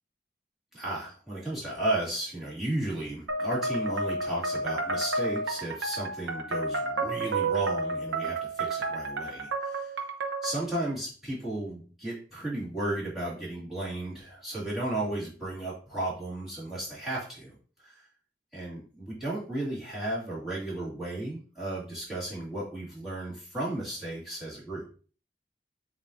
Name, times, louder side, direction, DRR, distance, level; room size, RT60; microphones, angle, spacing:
voice 1, 0.7-9.9 10.4-17.5 17.8-18.0 18.5-24.8, right 1 dB, ahead, -9 dB, 1.9 m, -34 dB
sound 1, 3.3-10.7, right 2 dB, 90° right, 0.8 m, -31 dB
7.1 x 2.5 x 2.6 m, 0.39 s
head